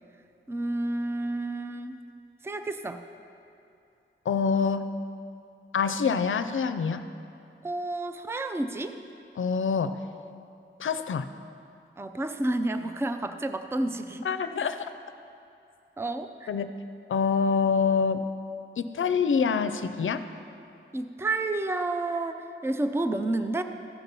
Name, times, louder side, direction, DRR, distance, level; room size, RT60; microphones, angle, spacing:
voice 1, 0.5-2.0 2.4-3.0 7.6-9.0 12.0-14.3 16.0-16.5 20.9-23.6, right 2 dB, 10° right, 8 dB, 0.4 m, -30 dB
voice 2, 4.3-4.8 5.7-7.0 9.4-10.0 10.8-11.3 14.2-14.8 16.5-16.7 17.1-18.2 18.8-20.2, left 5 dB, 70° left, 10 dB, 0.5 m, -25 dB
14.0 x 5.8 x 5.3 m, 2.6 s
wide cardioid pair, 115°, 21 cm